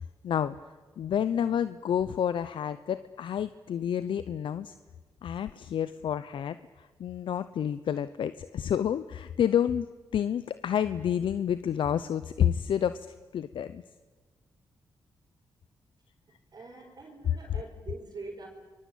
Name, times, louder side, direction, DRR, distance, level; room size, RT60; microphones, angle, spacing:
voice 1, 0.2-0.6 1.0-4.7 5.2-6.6 7.0-9.9 10.1-13.1 13.3-13.8, left 9 dB, 75° left, 14 dB, 0.8 m, -29 dB
voice 2, 16.3-18.5, right 3 dB, 50° right, -3 dB, 5.0 m, -44 dB
27.0 x 22.5 x 8.5 m, 1.3 s
cardioid pair, 55°, 9 cm